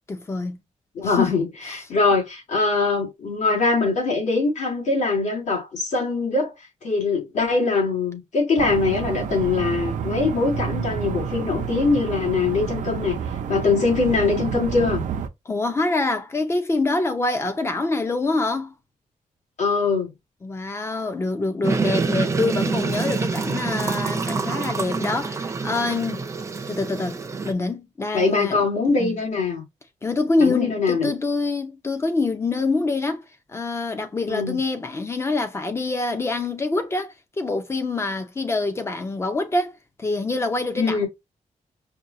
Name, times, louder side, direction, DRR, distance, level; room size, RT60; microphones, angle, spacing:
voice 1, 0.1-0.6 1.0-1.8 15.5-18.7 20.4-26.2 26.7-28.6 29.0-29.2 30.0-33.2 33.5-41.1, left 3 dB, 20° left, 0.6 m, -25 dB
voice 2, 1.0-6.5 6.8-13.2 13.5-15.0 19.6-20.1 28.1-29.6 30.4-31.1 34.2-34.6 40.7-41.1, left 4 dB, 60° left, 2.3 m, -22 dB
sound 1, 8.6-15.3, right 8 dB, 70° right, 0.6 m, -29 dB
sound 2, 21.6-27.5, right 4 dB, 20° right, 0.5 m, -26 dB
5.2 x 2.3 x 2.7 m
wide cardioid pair, 165°, 13 cm